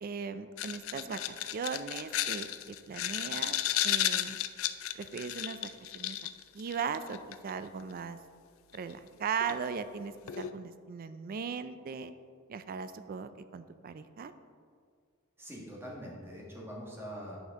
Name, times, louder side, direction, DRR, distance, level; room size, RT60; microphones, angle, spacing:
voice 1, 0.0-3.6 3.8-4.4 5.0-6.2 6.5-8.2 8.7-12.1 12.5-14.3, right 6 dB, 45° right, 12 dB, 0.3 m, -38 dB
sound 1, 0.6-7.5 8.7-8.8 9.4-9.7 10.3-10.5, left 12 dB, 75° left, 0.4 m, -33 dB
voice 2, 15.4-17.4, equal, 10° right, -3 dB, 1.4 m, -43 dB
9.1 x 5.3 x 3.6 m, 2.1 s
head